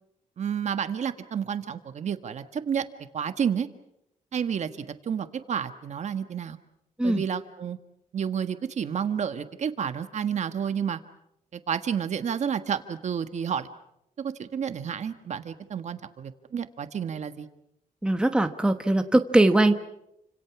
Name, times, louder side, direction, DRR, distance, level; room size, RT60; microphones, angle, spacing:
voice 1, 0.4-2.8 3.1-3.7 4.3-6.6 7.0-7.8 8.1-11.0 11.5-13.7 14.2-17.5, right 7 dB, 55° right, 9 dB, 1.5 m, -30 dB
voice 2, 18.0-19.7, right 1 dB, 5° right, 6 dB, 1.2 m, -21 dB
29.5 x 26.5 x 6.1 m, 0.80 s
wide cardioid pair, 160°, 14 cm